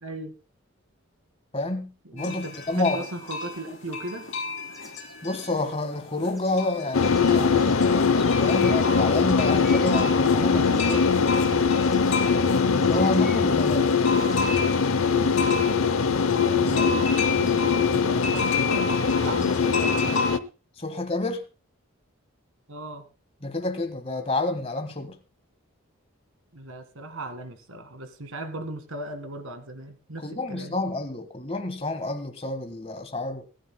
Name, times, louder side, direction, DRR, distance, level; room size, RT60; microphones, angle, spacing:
voice 1, 0.0-0.3 2.0-4.3 10.5-11.1 11.4-11.7 16.6-20.4 22.7-23.1 26.5-30.8, right 1 dB, 80° right, 1.9 m, -37 dB
voice 2, 1.5-3.0 5.2-10.6 12.5-14.0 16.7-16.9 20.8-21.4 23.4-25.2 30.2-33.5, left 2 dB, 25° left, 1.6 m, -29 dB
sound 1, 2.2-20.3, left 3 dB, 60° left, 4.5 m, -34 dB
sound 2, 4.0-4.1 4.4-5.6 6.3-11.1 11.8-12.3 12.7-13.5 14.2-14.6, left 1 dB, ahead, 2.5 m, -47 dB
sound 3, 6.9-20.4, left 5 dB, 75° left, 0.8 m, -22 dB
24.0 x 11.5 x 2.2 m
head